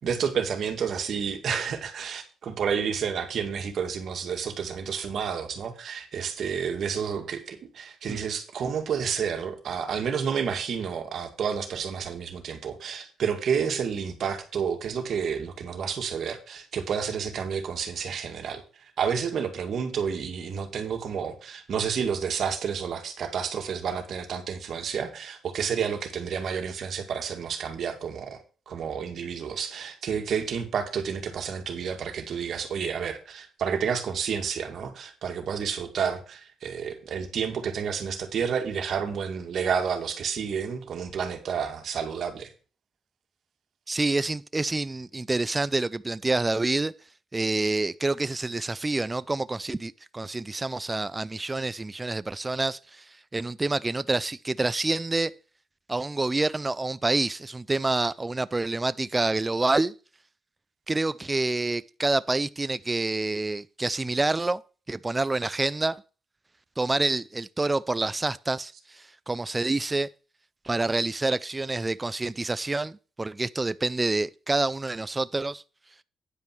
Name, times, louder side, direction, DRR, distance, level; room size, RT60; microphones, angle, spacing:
voice 1, 0.0-18.6 19.0-42.5, right 7 dB, 60° right, 2.1 m, -30 dB
voice 2, 43.9-46.9 47.3-53.1 53.3-55.3 55.9-59.9 60.9-64.6 64.9-66.0 66.8-70.1 70.6-75.6, right 2 dB, 20° right, 0.4 m, -27 dB
9.7 x 5.3 x 6.1 m
cardioid pair, 90°, 0 cm